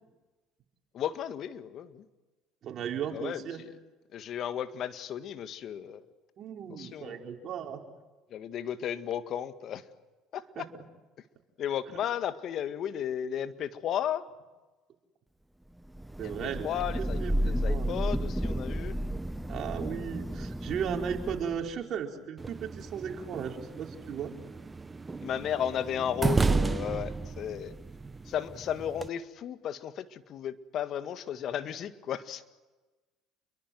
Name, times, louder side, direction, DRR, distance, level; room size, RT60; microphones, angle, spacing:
voice 1, 0.9-2.0 3.1-3.7 4.1-6.0 6.7-7.2 8.3-9.8 10.3-10.7 11.6-14.2 16.2-19.0 25.2-27.8 28.3-32.4, left 9 dB, 55° left, 10 dB, 1.8 m, -34 dB
voice 2, 2.6-3.6 6.4-7.8 10.5-10.6 16.2-16.7 17.2-17.4 17.7-17.9 19.5-24.3, right 8 dB, 55° right, 2 dB, 4.7 m, -36 dB
Thunder / Rain, 15.9-21.7, equal, 5° right, 1.1 m, -32 dB
sound 1, 22.4-29.1, right 4 dB, 25° right, 1.3 m, -33 dB
29.5 x 22.5 x 7.9 m, 1.2 s
hypercardioid pair, 75°, 0 cm